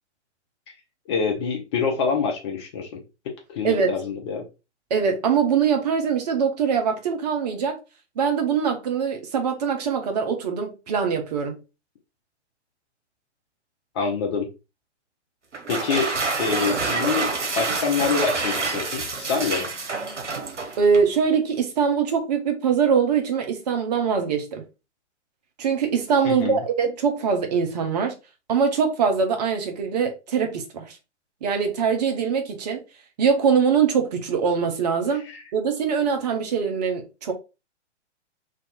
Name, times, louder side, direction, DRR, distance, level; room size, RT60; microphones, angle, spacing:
voice 1, 1.1-4.4 13.9-14.5 15.7-16.1 16.4-19.7 26.2-26.6 35.3-35.4, left 5 dB, 25° left, 0.6 m, -26 dB
voice 2, 3.6-4.0 4.9-7.8 8.2-11.6 20.8-24.6 25.6-28.1 28.5-31.0 31.4-32.8 33.2-35.3 35.5-37.3, right 6 dB, 35° right, 0.7 m, -23 dB
sound 1, 15.5-21.1, right 4 dB, 75° right, 0.9 m, -27 dB
2.8 x 2.4 x 3.3 m
figure-of-eight pair, 115°, 36 cm